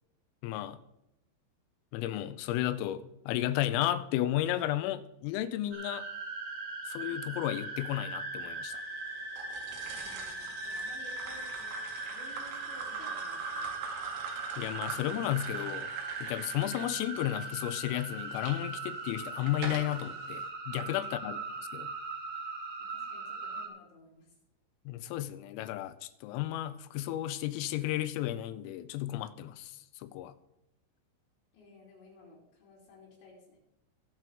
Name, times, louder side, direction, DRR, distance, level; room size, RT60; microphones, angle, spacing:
voice 1, 0.4-0.8 1.9-6.1 6.9-8.8 14.6-15.9 16.2-21.4 21.7-21.9 24.9-30.3, left 13 dB, 90° left, 13 dB, 3.3 m, -33 dB
sound 1, 5.7-23.7, right 3 dB, 45° right, 1.9 m, -40 dB
sound 2, 9.4-18.5 19.1-20.0, right 6 dB, 80° right, 4.6 m, -42 dB
voice 2, 10.0-11.7 12.1-13.7 21.2-21.3 22.8-24.3 31.5-33.6, left 2 dB, 60° left, -5 dB, 5.2 m, -55 dB
21.5 x 7.5 x 3.6 m, 0.86 s
omnidirectional pair, 6.0 m